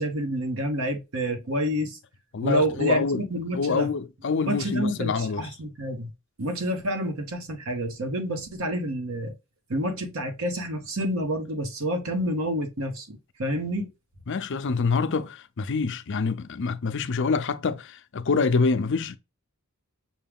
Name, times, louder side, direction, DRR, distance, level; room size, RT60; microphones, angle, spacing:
voice 1, 0.0-2.0 2.4-3.9 4.4-6.1 6.4-9.3 9.7-13.9, equal, 75° right, 1.2 m, -28 dB
voice 2, 2.3-3.2 3.5-5.5 14.3-19.2, left 4 dB, 60° left, 0.5 m, -26 dB
6.4 x 2.3 x 3.5 m
head